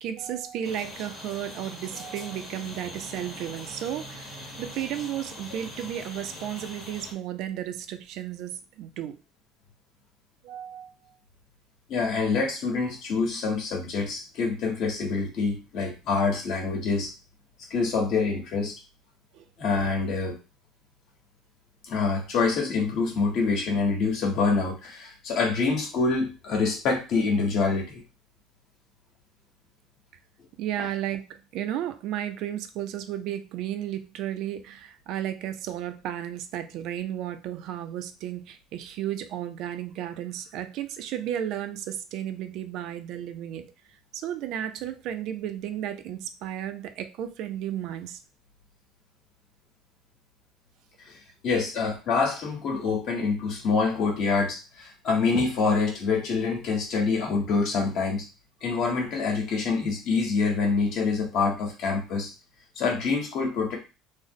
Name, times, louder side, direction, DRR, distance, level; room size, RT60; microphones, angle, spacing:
voice 1, 0.0-9.2 10.4-11.1 19.3-19.4 30.6-43.7 44.1-48.2, right 11 dB, 55° right, 10 dB, 0.3 m, -33 dB
sound 1, 0.6-7.1, left 1 dB, 20° left, 1.0 m, -42 dB
voice 2, 11.9-17.1 17.7-18.7 19.6-20.4 21.9-28.0 30.8-30.9 51.0-51.2 51.4-58.2 58.6-62.3 62.8-63.8, left 4 dB, 50° left, 1 dB, 1.3 m, -26 dB
3.5 x 2.0 x 3.6 m, 0.30 s
cardioid pair, 160°, 0 cm